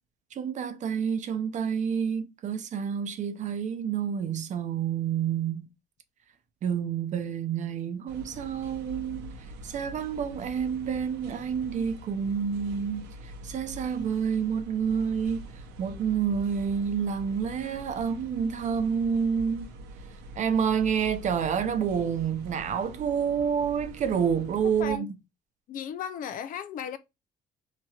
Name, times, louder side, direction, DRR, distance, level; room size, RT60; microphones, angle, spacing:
voice 1, 0.3-5.7 6.6-15.5 15.8-19.7 20.4-25.1, right 7 dB, 45° right, 0.5 m, -28 dB
sound 1, 8.1-25.0, equal, 85° right, 0.7 m, -44 dB
voice 2, 25.7-27.0, left 8 dB, 55° left, 0.4 m, -35 dB
2.9 x 2.8 x 2.3 m
cardioid pair, 110°, 17 cm